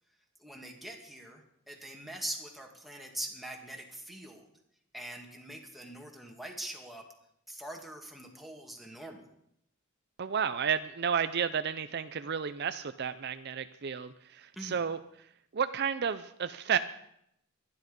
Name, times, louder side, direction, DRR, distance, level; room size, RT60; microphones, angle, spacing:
voice 1, 0.4-4.5 4.9-7.0 7.5-9.3 14.6-14.8, right 1 dB, ahead, 1 dB, 2.2 m, -43 dB
voice 2, 10.2-15.0 15.5-16.8, right 7 dB, 50° right, 11 dB, 0.5 m, -32 dB
24.0 x 10.5 x 5.3 m, 0.75 s
head